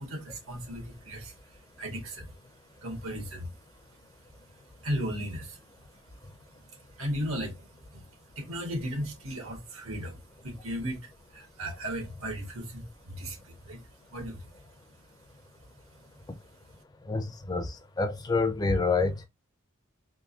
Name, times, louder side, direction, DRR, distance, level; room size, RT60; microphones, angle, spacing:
voice 1, 0.0-2.4 2.8-3.5 4.2-5.6 5.9-6.0 6.5-14.5, equal, 80° right, 1.5 m, -37 dB
voice 2, 17.0-19.2, left 3 dB, 20° left, 0.4 m, -28 dB
3.6 x 2.6 x 2.7 m
head